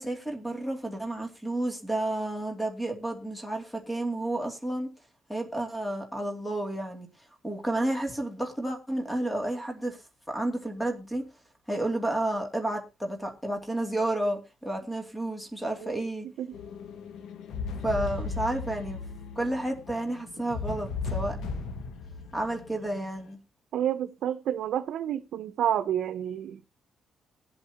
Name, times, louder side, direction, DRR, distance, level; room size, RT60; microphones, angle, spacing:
voice 1, 0.0-4.9 5.3-7.1 7.4-11.2 11.7-16.3 17.8-19.0 19.4-21.4 22.3-23.4, right 1 dB, 5° left, 2.6 m, -31 dB
sound 1, 16.5-23.3, left 4 dB, 80° left, 1.4 m, -36 dB
voice 2, 23.7-26.6, right 10 dB, 80° right, 0.7 m, -29 dB
21.5 x 8.1 x 2.9 m
cardioid pair, 135°, 0 cm